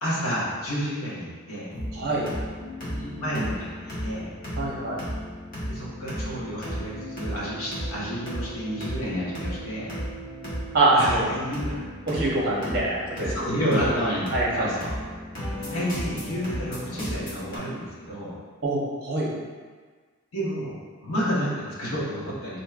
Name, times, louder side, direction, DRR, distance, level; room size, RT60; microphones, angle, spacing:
voice 1, 0.0-1.7 2.9-4.3 5.6-9.9 10.9-11.8 12.6-12.7 13.3-14.9 15.6-18.4 20.3-22.6, equal, 80° left, -6 dB, 1.0 m, -30 dB
sound 1, 1.7-17.6, equal, 40° left, 1.0 m, -34 dB
voice 2, 1.9-2.3 4.6-5.0 10.7-11.3 12.1-13.3 14.3-14.7 18.6-19.3, right 2 dB, 45° right, -5 dB, 0.8 m, -24 dB
4.3 x 2.7 x 2.4 m, 1.5 s
head